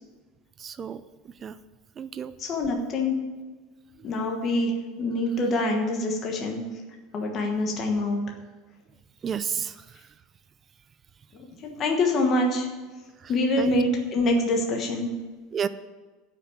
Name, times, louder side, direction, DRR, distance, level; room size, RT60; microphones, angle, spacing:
voice 1, 0.6-1.0 1.4-1.5 2.0-2.3 9.2-9.8 13.6-13.7 15.5-15.7, right 7 dB, 20° right, 14 dB, 0.3 m, -30 dB
voice 2, 2.4-3.2 4.0-6.6 7.1-8.2 11.4-12.7 13.3-15.1, left 2 dB, 25° left, 1 dB, 1.3 m, -25 dB
13.0 x 5.9 x 8.6 m, 1.3 s
supercardioid pair, 180°, 0 cm